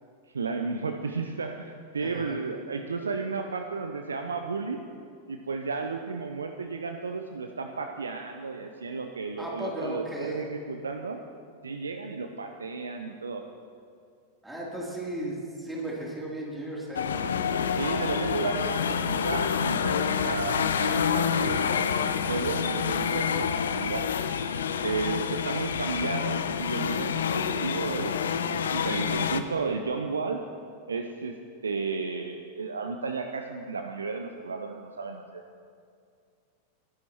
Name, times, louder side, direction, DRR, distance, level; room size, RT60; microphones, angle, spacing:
voice 1, 0.3-4.8 5.3-11.2 11.6-13.4 17.8-24.1 24.8-28.2 28.5-30.4 30.9-31.4 31.6-35.4, right 4 dB, 75° right, 6 dB, 0.6 m, -33 dB
voice 2, 2.0-2.4 9.4-10.5 14.4-17.1, right 1 dB, 5° right, -4 dB, 3.1 m, -35 dB
sound 1, 16.9-29.4, left 7 dB, 65° left, 0.6 m, -28 dB
22.0 x 11.5 x 3.0 m, 2.3 s
figure-of-eight pair, 90°, 0 cm